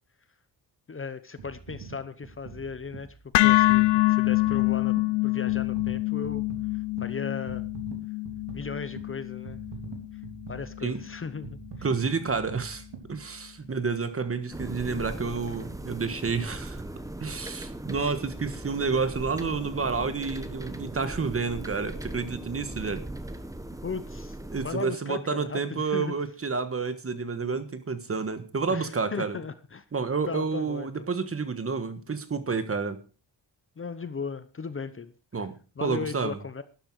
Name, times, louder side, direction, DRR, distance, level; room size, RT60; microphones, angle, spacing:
voice 1, 0.9-4.9 5.2-6.4 6.7-7.7 8.5-9.6 10.5-11.9 23.8-24.4 24.6-26.1 28.7-29.8 30.3-31.1 33.8-35.1 35.8-36.6, left 5 dB, 30° left, 13 dB, 0.8 m, -36 dB
sound 1, 1.4-13.8 14.4-14.5, right 4 dB, 75° right, 3.2 m, -45 dB
sound 2, 3.3-11.5, left 19 dB, 80° left, 0.5 m, -26 dB
voice 2, 11.8-16.8 17.2-23.0 24.5-29.4 29.9-33.0 35.3-36.4, right 4 dB, 30° right, 11 dB, 1.4 m, -30 dB
sound 3, 14.5-24.7, right 1 dB, 10° right, 1.2 m, -38 dB
12.0 x 11.5 x 4.7 m, 0.34 s
wide cardioid pair, 135°, 42 cm